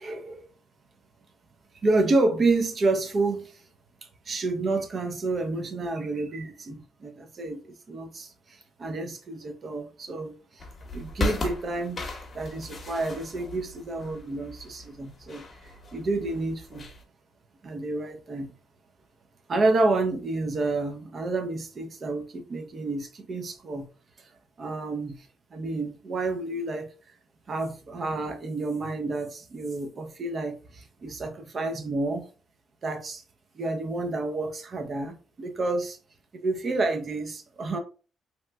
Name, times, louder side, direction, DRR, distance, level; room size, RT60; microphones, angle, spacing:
voice 1, 1.8-3.4 4.3-6.8 7.0-7.1 7.4-7.6 7.9-8.2 8.8-10.3 10.9-12.0 12.4-15.4 15.9-16.8 17.6-18.5 19.5-23.8 24.6-25.1 25.5-26.8 27.5-30.5 31.0-32.2 32.8-33.2 33.6-36.0 36.4-37.8, right 2 dB, 45° right, 0.6 m, -29 dB
sound 1, 10.6-17.0, left 1 dB, 35° left, 0.9 m, -36 dB
2.9 x 2.1 x 3.3 m
cardioid pair, 90°, 0 cm